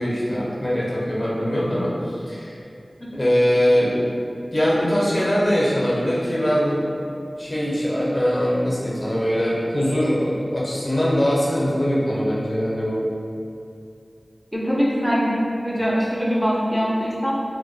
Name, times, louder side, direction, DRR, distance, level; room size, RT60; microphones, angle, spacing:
voice 1, 0.0-2.6 3.1-4.1 4.5-6.8 7.4-13.1, equal, 40° left, -7 dB, 0.6 m, -22 dB
voice 2, 14.5-17.4, equal, ahead, -6 dB, 0.5 m, -22 dB
2.2 x 2.2 x 2.6 m, 2.4 s
wide cardioid pair, 65°, 0 cm